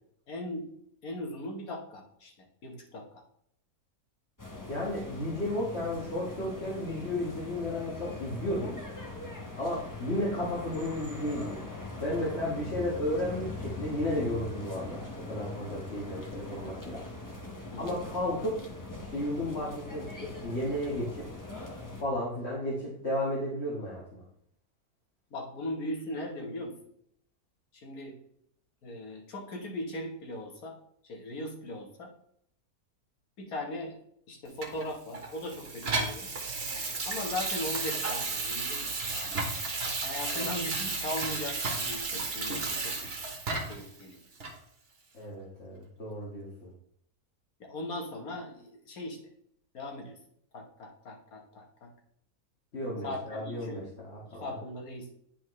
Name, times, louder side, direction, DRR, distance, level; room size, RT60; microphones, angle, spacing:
voice 1, 0.3-0.7 1.0-2.3 2.6-3.1 17.7-17.9 25.3-26.8 27.7-28.2 28.8-30.7 31.0-32.1 33.4-34.0 34.3-36.3 37.0-39.0 39.2-39.4 40.0-43.0 43.7-44.2 47.6-49.2 49.7-50.2 50.5-51.9 53.0-53.9 54.3-55.1, left 1 dB, 75° left, 2 dB, 1.8 m, -38 dB
sound 1, 4.4-22.0, left 2 dB, 15° left, 0.9 m, -42 dB
voice 2, 4.7-8.8 9.6-11.6 12.0-17.0 17.8-18.6 19.1-21.4 22.0-24.2 40.3-40.5 45.1-46.7 52.7-54.4, left 1 dB, 45° left, -6 dB, 1.8 m, -33 dB
Water tap faucet / Sink (filling or washing), 34.6-43.9 44.4-44.5, right 3 dB, 45° right, 1.3 m, -33 dB
10.5 x 4.4 x 3.2 m, 0.71 s
omnidirectional pair, 1.6 m